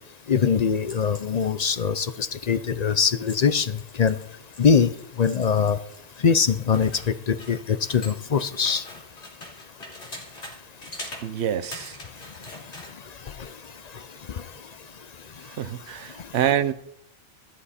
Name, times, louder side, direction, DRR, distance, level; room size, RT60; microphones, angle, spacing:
voice 1, 0.3-4.2 4.6-4.9 5.2-5.8 6.2-8.8, left 6 dB, 45° left, 0.5 m, -22 dB
sound 1, 0.8-6.2 6.5-10.6 10.8-11.2 11.6-12.9, left 2 dB, 70° left, 3.5 m, -43 dB
voice 2, 11.2-12.0 15.5-16.7, right 10 dB, 65° right, 1.0 m, -26 dB
14.5 x 13.0 x 4.3 m
omnidirectional pair, 1.2 m